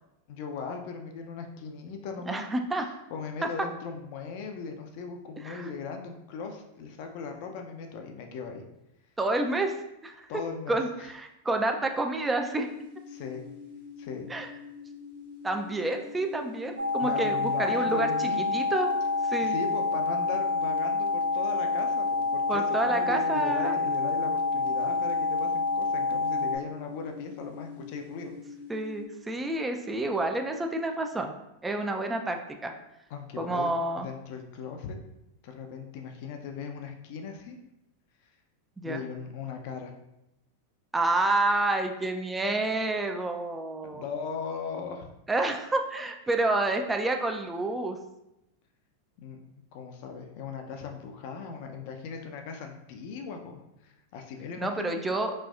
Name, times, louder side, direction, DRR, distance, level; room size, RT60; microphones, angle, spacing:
voice 1, 0.3-2.4 3.1-8.6 10.3-11.1 13.1-13.4 14.0-14.3 17.0-18.6 19.4-28.3 33.1-33.7 34.0-35.0 35.4-37.6 38.8-39.9 43.9-45.1 49.2-49.4 49.7-55.2, left 5 dB, 55° left, 4 dB, 0.5 m, -38 dB
voice 2, 2.3-2.9 5.4-5.7 9.2-9.7 10.0-10.4 10.7-12.7 14.3-14.5 15.4-18.9 19.3-19.5 22.5-23.8 28.7-31.3 31.6-32.7 33.4-34.1 38.8-39.0 40.9-44.0 45.3-48.0 54.6-55.3, right 2 dB, 10° right, 4 dB, 0.3 m, -29 dB
sound 1, 12.5-29.0, left 5 dB, 80° left, 1.0 m, -45 dB
sound 2, 16.8-26.6, left 3 dB, 85° right, 0.4 m, -27 dB
4.2 x 2.3 x 2.3 m, 0.88 s
hypercardioid pair, 105°, 0 cm